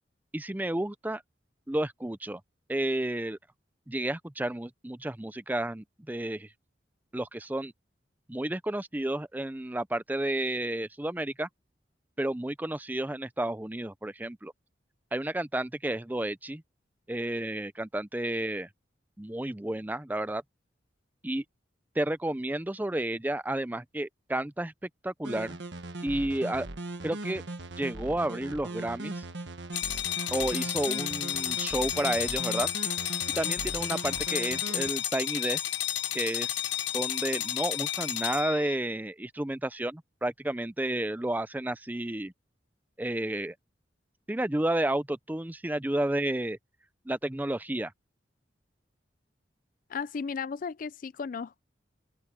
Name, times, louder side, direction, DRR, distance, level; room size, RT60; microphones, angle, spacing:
voice 1, 0.3-1.2 1.7-2.4 2.7-3.4 3.9-6.5 7.1-7.7 8.3-11.5 12.2-14.5 15.1-16.6 17.1-18.7 19.2-20.4 21.2-21.4 22.0-24.7 25.0-25.6 26.0-26.7 27.0-27.4 27.8-29.2 30.3-32.7 33.4-35.7 36.1-36.6 36.9-42.3 43.0-43.5 44.3-46.6 47.1-47.9, right 1 dB, 10° right, 0.5 m, -31 dB
sound 1, 25.2-34.9, right 2 dB, 75° right, 1.4 m, -39 dB
sound 2, 29.7-38.8, left 12 dB, 80° left, 1.0 m, -32 dB
voice 2, 49.9-51.6, left 5 dB, 45° left, 0.4 m, -35 dB
open air
head